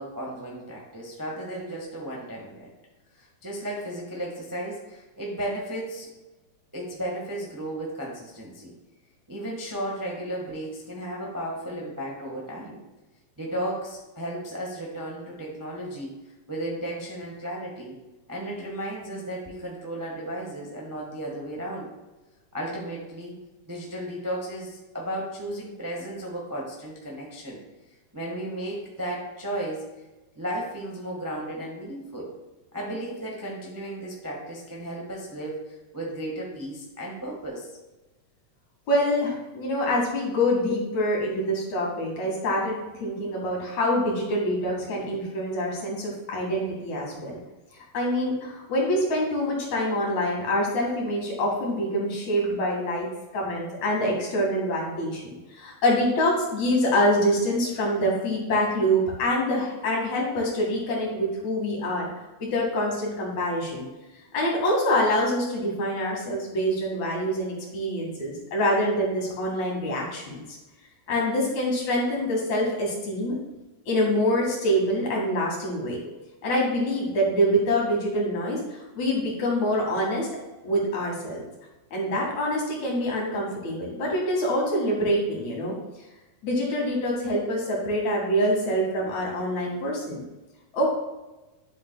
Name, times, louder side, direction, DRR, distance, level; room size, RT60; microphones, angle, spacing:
voice 1, 0.0-2.7 3.1-6.1 6.7-8.7 9.3-12.8 13.4-16.1 16.5-18.0 18.3-21.9 22.5-23.3 23.7-27.6 28.1-29.9 30.3-32.3 32.7-37.7, right 1 dB, 25° right, -2 dB, 0.4 m, -34 dB
voice 2, 38.9-47.4 47.7-62.1 62.4-63.8 64.3-70.6 71.1-73.4 73.9-76.0 76.4-80.3 80.6-81.4 81.9-85.8 86.4-90.2 90.7-90.9, equal, 65° left, -2 dB, 3.4 m, -25 dB
11.0 x 7.3 x 2.3 m, 1.1 s
omnidirectional pair, 3.5 m